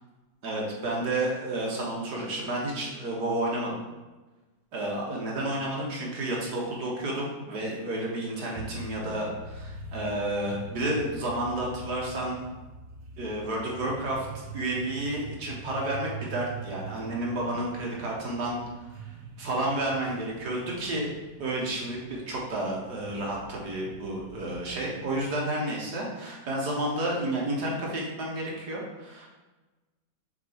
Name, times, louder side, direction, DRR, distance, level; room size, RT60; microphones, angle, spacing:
voice 1, 0.4-3.8 4.7-12.4 13.2-18.9 19.4-21.1 21.4-29.3, right 1 dB, 60° right, -3 dB, 1.8 m, -31 dB
sound 1, 8.5-25.3, right 3 dB, 75° right, 0.6 m, -43 dB
6.9 x 3.7 x 4.4 m, 1.2 s
omnidirectional pair, 2.1 m